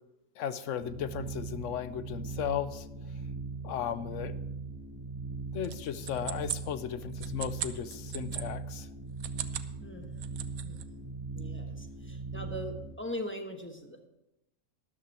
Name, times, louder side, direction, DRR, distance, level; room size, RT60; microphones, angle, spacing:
voice 1, 0.4-3.2 3.6-4.3 5.5-8.9, left 9 dB, 65° left, 14 dB, 0.9 m, -36 dB
sound 1, 0.8-12.9, right 4 dB, 25° right, 0.5 m, -40 dB
sound 2, 5.6-8.5 9.1-9.7 10.0-10.9, right 11 dB, 80° right, 1.1 m, -39 dB
voice 2, 9.8-10.3 10.6-14.1, left 1 dB, 10° left, 4 dB, 1.1 m, -41 dB
12.5 x 11.5 x 4.3 m, 0.90 s
omnidirectional pair, 1.5 m